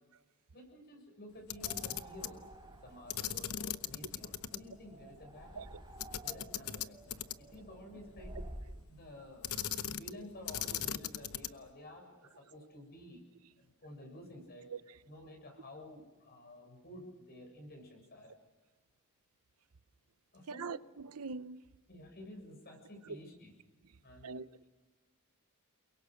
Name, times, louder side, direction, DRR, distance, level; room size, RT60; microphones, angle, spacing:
voice 1, 0.5-2.4 2.8-5.7 6.2-7.0 7.4-8.3 8.9-9.5 9.8-13.2 13.6-14.7 15.1-18.3 20.3-20.7 21.9-23.5 24.0-24.4, left 1 dB, 45° left, 7.4 m, -52 dB
Camera, 1.4-2.4 3.1-4.6 4.9-5.0 6.0-7.6 9.4-10.2 10.5-11.7, left 10 dB, 75° left, 0.9 m, -38 dB
sound 1, 1.5-8.8, right 1 dB, 20° right, 4.3 m, -51 dB
voice 2, 20.5-21.6 23.0-23.2 24.2-24.6, right 4 dB, 85° right, 0.8 m, -43 dB
29.5 x 23.0 x 6.5 m
head